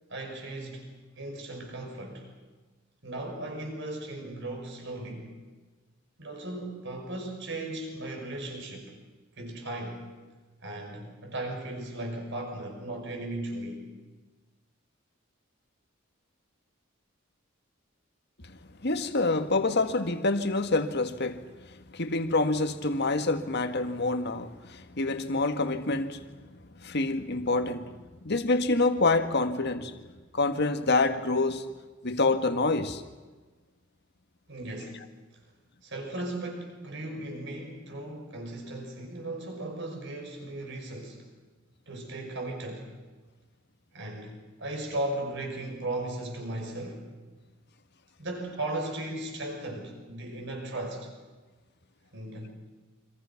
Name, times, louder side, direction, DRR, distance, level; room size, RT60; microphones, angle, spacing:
voice 1, 0.1-2.3 3.0-5.3 6.2-9.0 9.4-10.0 10.6-13.9 34.5-35.0 35.8-41.3 41.9-42.9 43.9-47.0 48.2-51.1 52.1-52.5, right 1 dB, 60° right, 6.1 m, -37 dB
voice 2, 18.8-26.2 26.7-27.9 28.2-30.0 30.3-31.7 32.0-33.0, left 3 dB, 55° left, 1.7 m, -27 dB
29.0 x 25.5 x 5.9 m
head